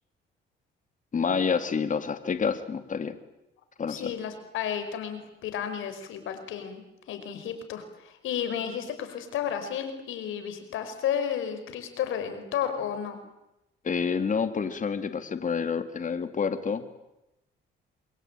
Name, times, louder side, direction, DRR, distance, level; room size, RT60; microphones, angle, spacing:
voice 1, 1.1-3.2 3.8-4.1 13.8-16.8, left 6 dB, 40° left, 10 dB, 2.4 m, -28 dB
voice 2, 3.9-13.2, left 9 dB, 85° left, 8 dB, 5.2 m, -32 dB
27.0 x 22.5 x 9.1 m, 0.90 s
cardioid pair, 90°, 20 cm